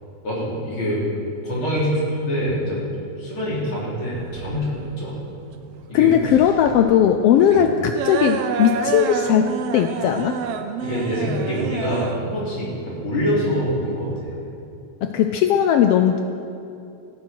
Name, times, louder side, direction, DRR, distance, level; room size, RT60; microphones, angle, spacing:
voice 1, 0.2-1.0 1.4-2.8 3.2-5.2 5.9-6.2 7.5-7.6 10.8-14.1, equal, 45° left, -6 dB, 4.5 m, -25 dB
sound 1, 4.1-14.2, right 6 dB, 70° right, 1.5 m, -29 dB
voice 2, 5.9-10.4 15.0-16.2, left 9 dB, 80° left, 7 dB, 1.3 m, -18 dB
16.5 x 14.5 x 4.6 m, 2.6 s
omnidirectional pair, 3.3 m